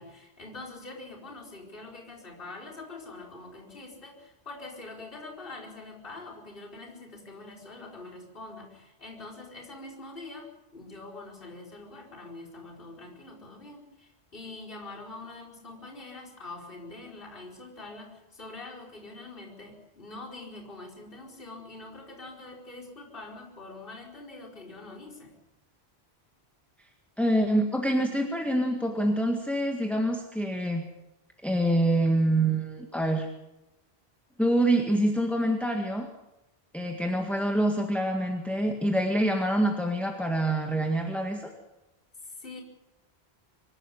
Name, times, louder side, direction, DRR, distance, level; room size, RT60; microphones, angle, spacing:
voice 1, 0.0-25.4 42.2-42.6, left 2 dB, 55° left, -4 dB, 4.9 m, -44 dB
voice 2, 27.2-30.8 31.4-33.3 34.4-36.1 36.7-41.5, right 1 dB, ahead, 2 dB, 1.8 m, -26 dB
26.0 x 12.0 x 9.9 m, 0.96 s
omnidirectional pair, 1.1 m